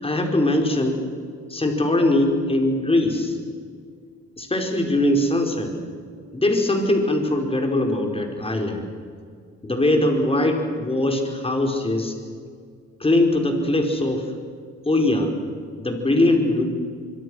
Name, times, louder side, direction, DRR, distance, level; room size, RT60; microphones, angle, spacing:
voice 1, 0.0-1.0 1.5-3.4 4.4-5.8 6.3-8.9 9.6-12.1 13.0-14.2 14.8-15.3 15.8-16.6, left 1 dB, 20° left, 3 dB, 4.8 m, -21 dB
24.5 x 24.0 x 6.4 m, 2.1 s
cardioid pair, 90°, 30 cm